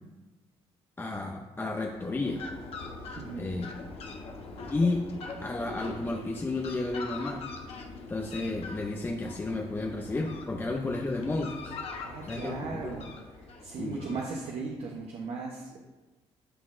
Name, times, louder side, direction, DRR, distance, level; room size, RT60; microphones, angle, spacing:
voice 1, 1.0-2.4 3.4-3.7 4.7-5.0 5.4-7.4 8.1-11.8 12.2-13.0 13.8-14.2, left 2 dB, 20° left, 1 dB, 0.5 m, -32 dB
Fowl, 1.7-14.7, left 3 dB, 60° left, 0.9 m, -42 dB
voice 2, 3.2-3.5 12.0-13.1 13.4-15.8, right 4 dB, 60° right, -1 dB, 0.8 m, -37 dB
11.0 x 3.9 x 2.5 m, 1.1 s
cardioid pair, 115°, 11 cm